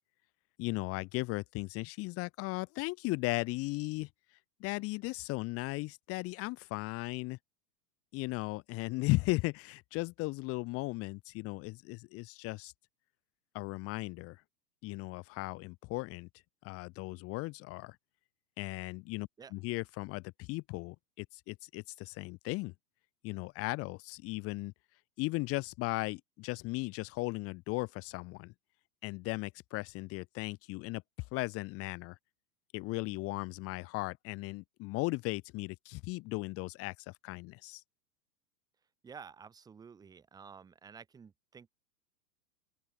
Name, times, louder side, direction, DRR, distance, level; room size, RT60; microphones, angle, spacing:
voice 1, 0.6-4.1 4.6-7.4 8.1-12.7 13.5-14.4 14.8-16.3 16.6-18.0 18.6-22.7 23.2-24.7 25.2-28.5 29.0-31.0 31.3-32.2 32.7-37.8, left 23 dB, 30° left, 0.8 m, -36 dB
voice 2, 39.0-41.7, right 6 dB, 10° right, 0.6 m, -51 dB
open air
hypercardioid pair, 105°, 47 cm